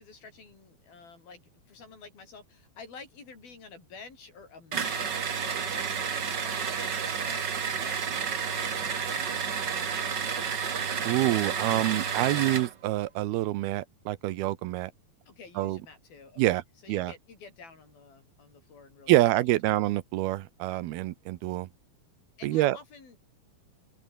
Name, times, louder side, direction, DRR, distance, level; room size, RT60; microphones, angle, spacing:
voice 1, 0.0-10.5 15.3-19.1 19.6-19.8 22.4-23.2, left 4 dB, 70° left, 8.5 m, -50 dB
sound 1, 4.7-12.7, right 6 dB, 40° right, 1.6 m, -31 dB
voice 2, 11.0-14.9 15.6-15.8 16.4-16.6 16.9-17.1 19.1-21.7 22.4-22.8, right 16 dB, 85° right, 2.8 m, -26 dB
open air
omnidirectional pair, 4.4 m